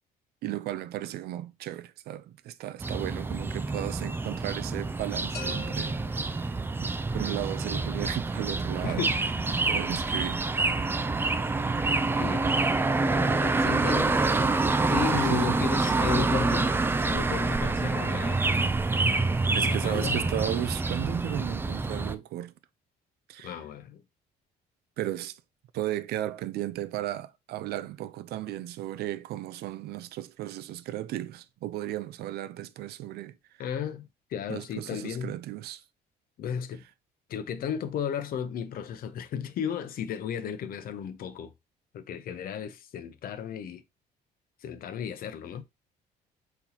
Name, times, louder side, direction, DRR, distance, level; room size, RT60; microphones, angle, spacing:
voice 1, 0.4-6.0 6.8-9.1 9.6-10.6 15.1-15.6 19.6-22.5 23.3-23.6 25.0-25.4 25.7-33.3 34.5-35.8, right 13 dB, 70° right, 0.5 m, -35 dB
sound 1, 2.8-22.1, right 3 dB, 15° right, 0.4 m, -27 dB
sound 2, 5.3-7.2, left 6 dB, 80° left, 1.3 m, -44 dB
voice 2, 8.8-9.2 12.2-12.5 13.0-14.2 14.9-16.7 17.0-18.4 19.6-20.3 23.4-24.0 33.6-35.4 36.4-36.8 37.3-41.5 41.9-43.8 44.6-45.6, left 8 dB, 60° left, 0.7 m, -34 dB
4.3 x 4.0 x 2.8 m
cardioid pair, 110°, 17 cm